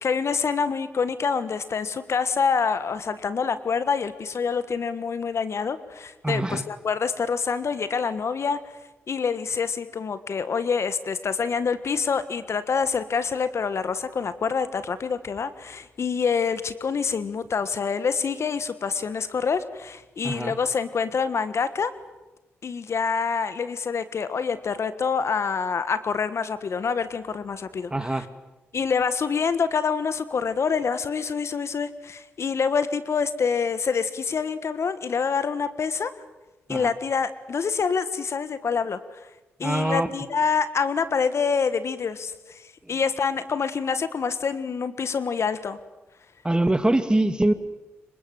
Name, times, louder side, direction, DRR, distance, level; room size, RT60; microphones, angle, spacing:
voice 1, 0.0-8.6 9.1-21.9 22.6-28.2 28.7-36.1 36.7-39.2 39.6-45.8, left 5 dB, 55° left, 13 dB, 1.5 m, -26 dB
voice 2, 6.2-6.6 20.2-20.5 27.9-28.3 36.7-36.9 39.6-40.1 42.8-42.9 46.4-47.5, right 1 dB, 15° right, 10 dB, 2.5 m, -23 dB
26.0 x 24.0 x 7.9 m, 1.1 s
hypercardioid pair, 45°, 5 cm